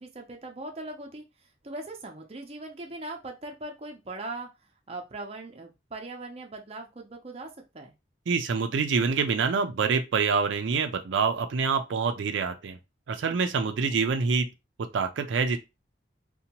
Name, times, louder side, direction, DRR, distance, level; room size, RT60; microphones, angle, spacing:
voice 1, 0.0-4.5 4.9-7.9 13.5-14.2, right 2 dB, 35° right, 0.5 m, -40 dB
voice 2, 8.3-12.8 13.1-14.5 14.9-15.6, right 5 dB, 85° right, 0.4 m, -26 dB
2.7 x 2.2 x 2.8 m
head